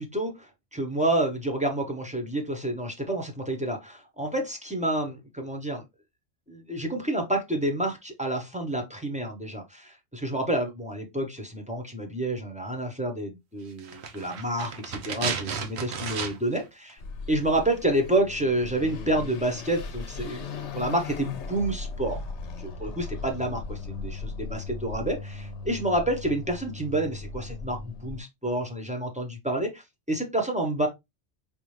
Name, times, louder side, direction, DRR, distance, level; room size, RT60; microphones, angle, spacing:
voice 1, 0.0-5.8 6.5-17.0 17.3-20.5 20.7-22.2 22.6-29.8 30.1-30.9, right 1 dB, 5° right, 0.8 m, -29 dB
sound 1, 13.8-16.6 16.9-17.0, right 6 dB, 65° right, 0.9 m, -33 dB
Car passing by / Accelerating revving vroom, 17.0-28.2, left 4 dB, 75° left, 1.0 m, -38 dB
5.3 x 2.4 x 3.1 m
omnidirectional pair, 1.2 m